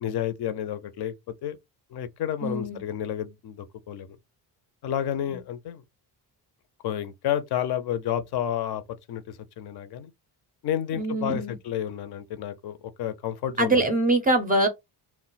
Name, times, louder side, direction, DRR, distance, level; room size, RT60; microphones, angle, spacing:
voice 1, 0.0-1.1 1.4-1.6 1.9-4.1 4.8-5.8 6.8-8.8 9.1-10.1 10.6-13.8, left 10 dB, 60° left, 0.5 m, -30 dB
voice 2, 2.4-2.8 5.3-5.4 11.0-11.6 13.6-14.7, right 2 dB, 20° right, 0.4 m, -23 dB
2.2 x 2.0 x 3.8 m
cardioid pair, 155°, 43 cm